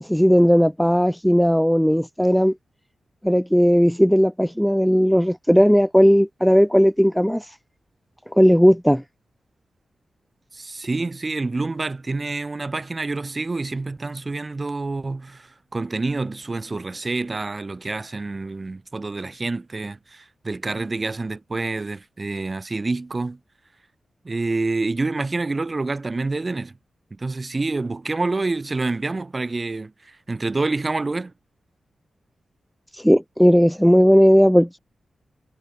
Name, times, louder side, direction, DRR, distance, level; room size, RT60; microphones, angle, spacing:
voice 1, 0.0-2.5 3.2-7.5 8.3-9.0 32.9-34.8, equal, ahead, 1.2 m, -16 dB
voice 2, 10.5-23.4 24.2-26.7 27.2-31.3, right 3 dB, 30° right, 3.9 m, -27 dB
wide cardioid pair, 110°, 0 cm